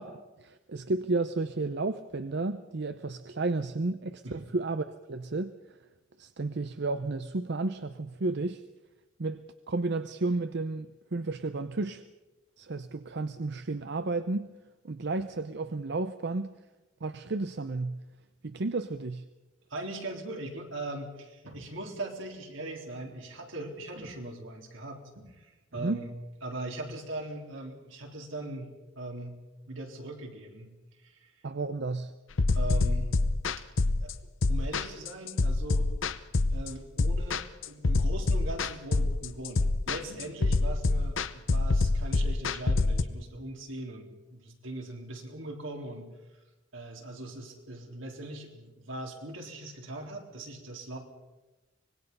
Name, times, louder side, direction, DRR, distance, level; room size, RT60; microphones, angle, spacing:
voice 1, 0.0-5.5 6.2-8.6 9.2-12.0 12.6-14.5 14.8-16.5 17.0-18.0 18.4-19.3 25.8-26.0 31.4-32.1, right 3 dB, 60° right, 11 dB, 0.7 m, -32 dB
voice 2, 19.7-26.1 26.4-29.4 29.7-30.7 31.0-31.3 32.5-33.1 34.0-34.1 34.5-35.9 36.5-46.1 46.7-51.0, right 1 dB, 80° right, 1 dB, 3.7 m, -40 dB
sound 1, 32.4-43.0, left 3 dB, 80° left, 0.9 m, -26 dB
24.5 x 20.5 x 5.5 m, 1.1 s
head